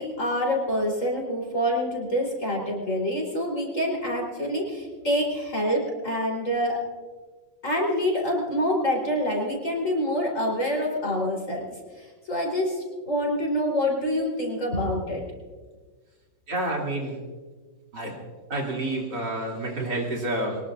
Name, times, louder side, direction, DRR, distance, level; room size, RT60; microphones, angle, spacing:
voice 1, 0.0-6.8 7.6-11.7 12.0-15.2, equal, 40° left, -1 dB, 4.2 m, -26 dB
voice 2, 16.5-17.2 17.9-18.1 18.5-20.6, right 1 dB, 60° right, -2 dB, 3.6 m, -29 dB
24.0 x 20.5 x 2.5 m, 1.4 s
omnidirectional pair, 2.1 m